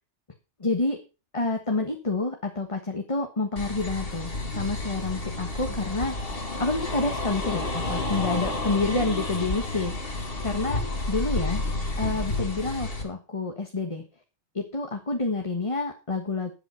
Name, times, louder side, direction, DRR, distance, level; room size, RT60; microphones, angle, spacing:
voice 1, 0.6-1.0 1.3-6.2 6.6-10.0 10.4-11.6 12.0-14.0 14.5-16.5, left 3 dB, 25° left, 4 dB, 1.6 m, -28 dB
sound 1, 3.6-13.0, left 2 dB, 50° left, 2.4 m, -30 dB
12.5 x 8.1 x 5.8 m, 0.31 s
omnidirectional pair, 1.2 m